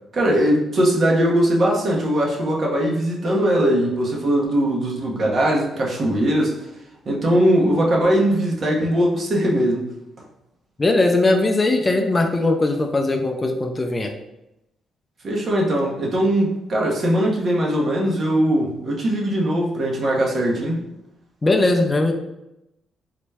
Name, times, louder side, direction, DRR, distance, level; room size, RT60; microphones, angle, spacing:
voice 1, 0.1-6.7 7.0-9.8 15.2-20.8, right 1 dB, 50° right, -2 dB, 0.9 m, -20 dB
voice 2, 10.8-14.1 21.4-22.1, left 2 dB, 25° left, 4 dB, 0.4 m, -19 dB
3.9 x 2.2 x 3.3 m, 0.88 s
cardioid pair, 90°, 0 cm